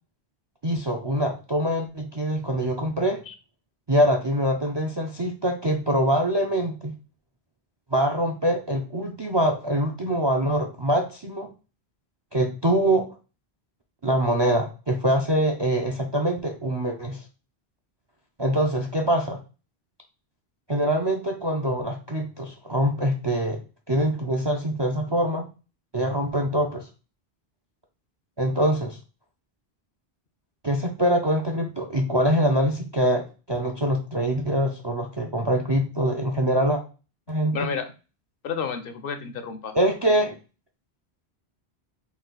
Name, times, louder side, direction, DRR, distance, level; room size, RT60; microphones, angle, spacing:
voice 1, 0.6-3.2 3.9-6.9 7.9-11.5 12.3-13.1 14.0-17.2 18.4-19.4 20.7-23.6 23.9-25.5 25.9-26.9 28.4-29.0 30.6-36.8 37.3-37.6 39.7-40.3, right 1 dB, 40° right, 3 dB, 0.4 m, -24 dB
voice 2, 37.5-37.9 38.4-39.7, left 6 dB, 65° left, 8 dB, 0.7 m, -31 dB
4.0 x 2.4 x 3.8 m, 0.32 s
omnidirectional pair, 1.1 m